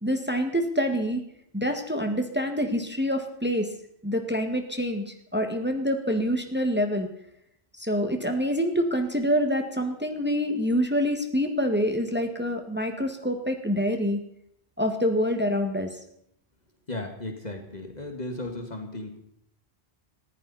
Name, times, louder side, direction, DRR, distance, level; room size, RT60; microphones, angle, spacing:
voice 1, 0.0-1.2 1.5-3.7 4.0-7.1 7.8-14.2 14.8-15.9, equal, 10° right, 4 dB, 1.7 m, -26 dB
voice 2, 16.9-19.2, left 2 dB, 45° left, 3 dB, 2.0 m, -35 dB
19.0 x 15.5 x 4.2 m, 0.71 s
omnidirectional pair, 1.0 m